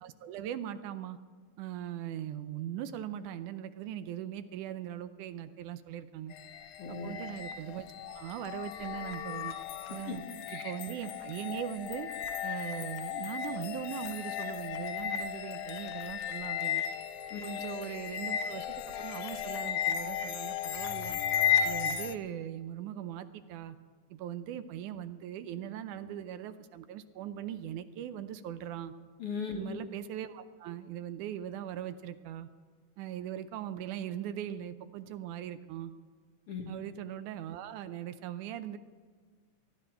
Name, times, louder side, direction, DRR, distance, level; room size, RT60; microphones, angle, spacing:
voice 1, 0.0-1.2 1.6-6.4 6.9-9.5 9.9-10.2 10.5-12.1 12.4-16.8 17.4-21.2 21.6-23.8 24.1-28.9 29.5-32.5 33.0-35.9 36.7-38.8, right 10 dB, 80° right, 11 dB, 2.1 m, -40 dB
sound 1, 6.3-22.2, left 9 dB, 80° left, 2.1 m, -35 dB
voice 2, 6.8-7.1 10.1-10.2 10.5-10.6 17.3-17.4 29.2-29.7 36.5-36.7, left 5 dB, 55° left, 2 dB, 1.9 m, -37 dB
18.5 x 13.0 x 4.5 m, 1.5 s
omnidirectional pair, 3.6 m